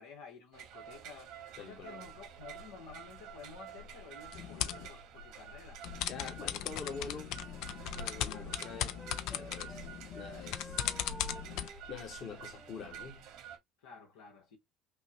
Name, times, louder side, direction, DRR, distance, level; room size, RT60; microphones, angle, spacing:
voice 1, 0.0-5.8 13.8-14.6, left 5 dB, 85° left, 1.2 m, -52 dB
sound 1, 0.5-13.6, right 4 dB, 75° right, 1.4 m, -49 dB
voice 2, 1.6-2.0 6.1-7.4 8.0-9.0 9.3-9.8 10.1-10.9 11.9-13.3, left 5 dB, 55° left, 1.6 m, -45 dB
sound 2, 4.3-4.9 5.8-11.7, left 11 dB, 70° left, 0.4 m, -38 dB
Wind instrument woodwind instrument, 7.2-9.8 10.1-12.9, equal, 5° left, 0.9 m, -53 dB
5.4 x 2.2 x 2.8 m
supercardioid pair, 85°, 0 cm